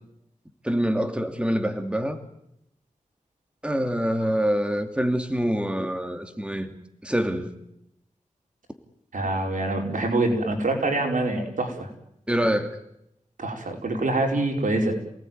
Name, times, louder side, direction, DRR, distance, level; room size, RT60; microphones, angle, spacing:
voice 1, 0.6-2.2 3.6-6.7 7.0-7.5 12.3-12.8, equal, 10° right, 6 dB, 2.8 m, -25 dB
voice 2, 9.1-11.9 13.4-14.9, right 2 dB, 90° right, 2 dB, 4.9 m, -25 dB
29.0 x 18.5 x 9.5 m, 0.79 s
wide cardioid pair, 85°, 13 cm